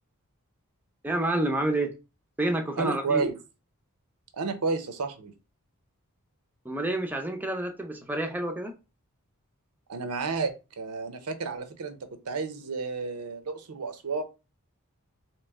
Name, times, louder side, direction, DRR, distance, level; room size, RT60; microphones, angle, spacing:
voice 1, 1.0-1.9 2.4-3.2 6.6-8.7, right 1 dB, 10° right, 0.5 m, -28 dB
voice 2, 2.8-3.4 4.4-5.3 9.9-14.2, right 4 dB, 90° right, 0.7 m, -31 dB
3.1 x 2.9 x 3.4 m
head